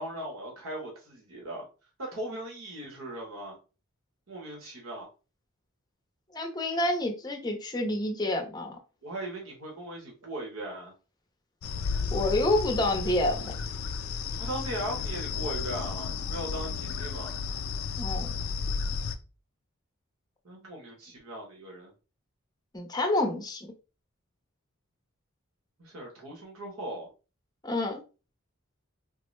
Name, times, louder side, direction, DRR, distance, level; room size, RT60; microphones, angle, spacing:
voice 1, 0.0-1.7 2.0-3.6 4.3-5.1 9.0-10.9 14.3-17.3 20.4-21.9 25.8-27.1, right 1 dB, 70° right, 1.0 m, -38 dB
voice 2, 6.3-8.8 12.1-13.5 18.0-18.3 22.7-23.7 27.6-28.0, left 1 dB, 20° left, 0.6 m, -28 dB
sound 1, 11.6-19.2, left 5 dB, 70° left, 0.4 m, -33 dB
3.8 x 2.0 x 3.1 m
head